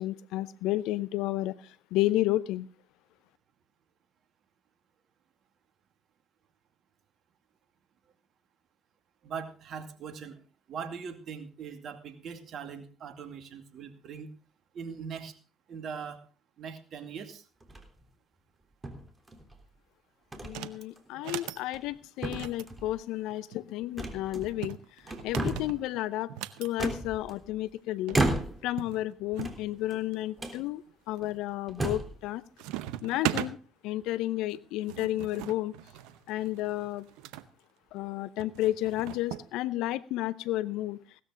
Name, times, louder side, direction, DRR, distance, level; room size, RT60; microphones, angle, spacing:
voice 1, 0.0-1.5 1.9-2.7 20.4-24.8 25.2-26.3 26.6-28.2 28.6-30.8 31.1-32.4 33.0-33.6 33.8-35.7 36.3-37.0 37.9-41.0, left 15 dB, 70° left, 17 dB, 0.7 m, -31 dB
voice 2, 9.2-10.4 10.7-14.3 14.7-15.3 15.7-16.2 16.6-17.4, right 6 dB, 55° right, 9 dB, 2.3 m, -41 dB
sound 1, 17.6-18.0 18.8-19.6 20.3-20.6 21.0-21.1 21.6-22.0 22.2-22.9 24.0-24.7 25.0-25.8 26.8-27.6 28.1-28.8 29.3-30.0 30.4-30.6 31.2-31.3 31.7-32.2, right 2 dB, 25° right, 3.4 m, -33 dB
sound 2, 20.4-20.8 21.1-21.6 22.2-23.6 24.4-26.7 27.8-27.9 28.1-28.2 28.8-29.6 30.1-30.6 31.2-31.6 31.9-32.3 32.6-33.5 34.5-37.5 38.4-39.5, right 14 dB, 75° right, 0.7 m, -39 dB
17.0 x 13.0 x 3.8 m, 0.36 s
hypercardioid pair, 50°, 0 cm